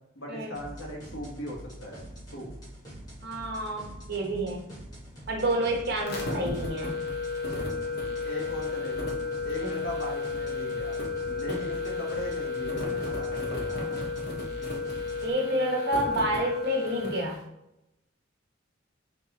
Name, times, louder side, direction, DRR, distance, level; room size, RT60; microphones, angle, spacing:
voice 1, 0.2-2.0 2.3-2.5 8.2-9.1 9.4-10.9 11.3-13.6, left 1 dB, 75° left, -2 dB, 2.2 m, -38 dB
sound 1, 0.5-15.3, equal, 20° left, 2.1 m, -45 dB
voice 2, 3.2-4.6 5.3-6.9 9.6-9.7 11.5-11.6 15.2-17.4, right 1 dB, 55° right, 1 dB, 1.6 m, -29 dB
sound 2, 6.0-17.3, left 4 dB, 55° left, 1.6 m, -32 dB
5.9 x 4.1 x 4.3 m, 0.88 s
head